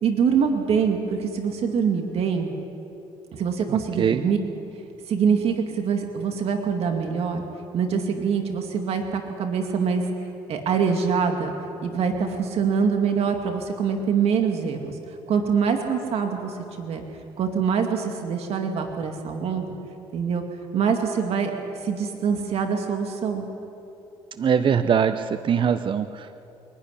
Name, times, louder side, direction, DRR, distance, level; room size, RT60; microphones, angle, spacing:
voice 1, 0.0-2.5 3.3-4.4 5.1-7.4 7.7-10.1 10.5-11.5 11.8-17.0 17.4-19.7 20.1-20.4 20.7-23.4, right 6 dB, 60° right, 4 dB, 2.2 m, -24 dB
voice 2, 3.7-4.2 24.4-26.4, right 7 dB, 45° right, 11 dB, 0.8 m, -23 dB
24.0 x 11.5 x 9.9 m, 2.9 s
supercardioid pair, 75°, 12 cm